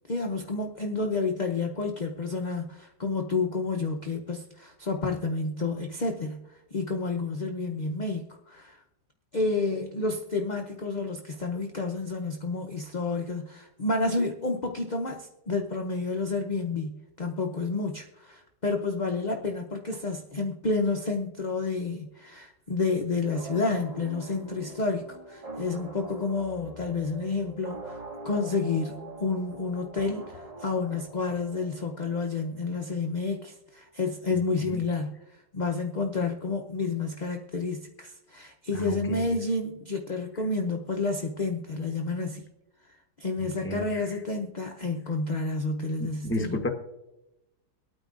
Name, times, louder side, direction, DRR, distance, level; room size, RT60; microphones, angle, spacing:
voice 1, 0.1-8.8 9.3-28.0 28.2-35.2 35.5-42.5 43.2-46.6, left 3 dB, 50° left, 2 dB, 0.5 m, -30 dB
sound 1, 23.3-32.8, right 1 dB, 25° right, 1.5 m, -43 dB
voice 2, 38.7-39.3 43.6-44.0 46.0-46.7, left 1 dB, 10° left, 4 dB, 0.7 m, -32 dB
23.5 x 9.1 x 2.5 m, 0.95 s
omnidirectional pair, 1.8 m